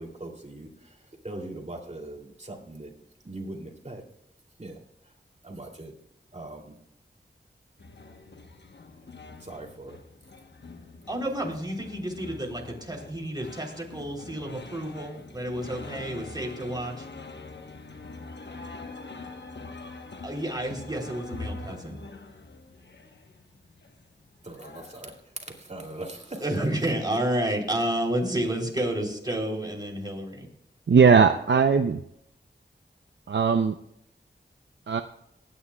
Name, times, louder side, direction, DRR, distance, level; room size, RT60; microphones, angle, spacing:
voice 1, 0.0-2.9 3.2-4.0 4.6-5.1 5.4-5.9 6.3-6.8 9.4-10.0 24.4-26.4, right 2 dB, 35° right, 1 dB, 2.7 m, -41 dB
sound 1, 7.8-25.2, left 3 dB, 65° left, 1.0 m, -44 dB
voice 2, 11.1-17.1 20.2-22.0 26.4-30.5, right 1 dB, 20° right, -1 dB, 3.3 m, -30 dB
voice 3, 30.9-32.0 33.3-33.7 34.9-35.0, right 6 dB, 65° right, 6 dB, 0.5 m, -19 dB
22.5 x 9.8 x 2.3 m, 0.76 s
wide cardioid pair, 50°, 20 cm